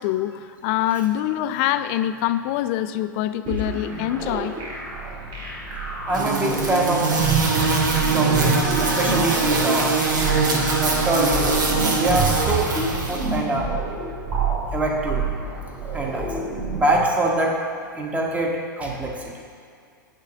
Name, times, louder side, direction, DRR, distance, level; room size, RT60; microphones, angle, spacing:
voice 1, 0.0-4.6, left 13 dB, 40° left, 12 dB, 0.3 m, -24 dB
sound 1, 3.5-17.1, right 3 dB, 35° right, 1.9 m, -28 dB
voice 2, 6.1-7.1 8.1-9.9 10.8-13.7 14.7-15.2 15.8-16.3 16.7-17.6 17.9-19.3, right 2 dB, 10° right, 0 dB, 1.2 m, -24 dB
sound 2, 6.1-13.3, right 4 dB, 65° right, 1.2 m, -23 dB
sound 3, 7.6-16.5, right 4 dB, 80° right, 1.2 m, -31 dB
9.3 x 3.8 x 6.0 m, 2.4 s
figure-of-eight pair, 100°, 11 cm